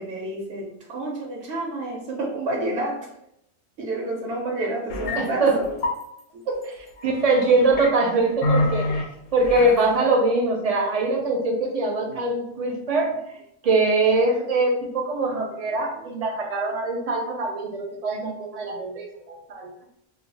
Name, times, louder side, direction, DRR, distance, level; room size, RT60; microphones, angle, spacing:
voice 1, 0.0-3.1 3.8-5.6 6.3-6.6 8.8-9.1 12.1-12.2 12.7-12.8 15.7-16.0, right 2 dB, 85° right, -1 dB, 0.9 m, -30 dB
sound 1, 4.9-5.2 5.5-6.0 7.0-7.9 8.4-9.0 9.4-9.8, left 2 dB, 90° left, 0.9 m, -26 dB
voice 2, 5.2-5.6 7.0-9.0 9.3-13.1 13.6-19.7, right 2 dB, 50° right, 1 dB, 0.5 m, -23 dB
2.3 x 2.0 x 3.8 m, 0.78 s
omnidirectional pair, 1.1 m